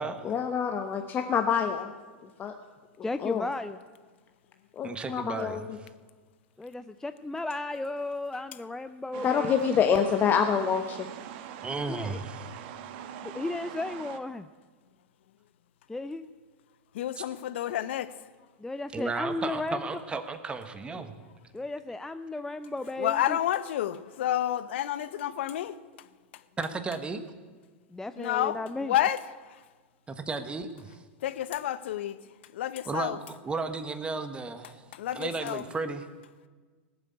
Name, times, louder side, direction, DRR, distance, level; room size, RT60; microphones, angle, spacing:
voice 1, 0.2-1.9 2.4-2.5 3.2-3.5 4.8-5.6 9.2-11.1, left 7 dB, 30° left, 1.0 m, -26 dB
voice 2, 3.0-3.8 6.6-9.8 11.9-12.2 13.2-14.5 15.9-16.3 18.6-19.9 21.5-23.4 27.9-28.9, left 2 dB, 5° left, 0.4 m, -34 dB
voice 3, 4.8-5.9 11.6-12.5 18.9-21.1 26.6-27.2 30.1-31.0 32.9-34.9 35.1-36.0, right 4 dB, 15° right, 1.3 m, -34 dB
sound 1, 9.1-14.2, right 9 dB, 55° right, 1.2 m, -42 dB
voice 4, 16.9-18.2 23.0-26.1 26.3-26.4 28.2-29.6 31.2-33.2 34.6-35.6, left 12 dB, 70° left, 0.8 m, -30 dB
18.0 x 7.6 x 8.5 m
hypercardioid pair, 110°, 6 cm